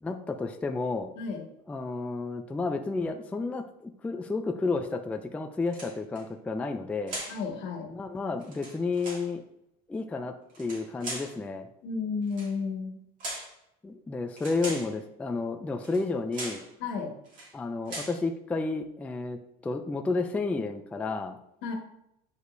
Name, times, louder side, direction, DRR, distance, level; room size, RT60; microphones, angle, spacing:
voice 1, 0.0-1.1 1.7-7.2 7.9-9.4 9.9-11.7 13.8-16.6 17.5-21.4, left 3 dB, 5° left, 6 dB, 0.3 m, -31 dB
sound 1, 5.7-6.2 7.1-7.4 8.4-9.3 10.5-11.4 12.3-12.5 13.2-13.5 14.4-14.9 15.8-16.0 16.3-16.7 17.3-17.5 17.9-18.2, right 1 dB, 40° right, 2.3 m, -39 dB
voice 2, 7.3-7.9 11.8-13.0 16.8-17.1 21.6-21.8, left 5 dB, 75° left, 2 dB, 1.5 m, -32 dB
7.9 x 5.1 x 2.6 m, 0.79 s
cardioid pair, 145°, 19 cm